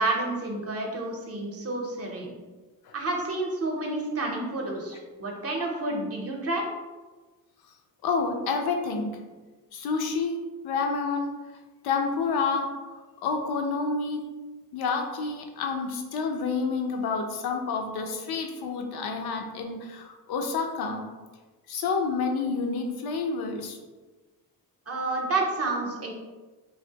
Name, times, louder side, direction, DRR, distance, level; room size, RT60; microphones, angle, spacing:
voice 1, 0.0-2.3 2.9-6.6 24.9-26.1, right 2 dB, 40° right, 0 dB, 0.7 m, -29 dB
voice 2, 8.0-9.2 9.7-11.4 11.8-12.7 13.2-14.3 14.7-21.1 21.7-23.8, left 4 dB, 80° left, 4 dB, 0.6 m, -29 dB
3.2 x 2.6 x 2.8 m, 1.3 s
cardioid pair, 115°, 37 cm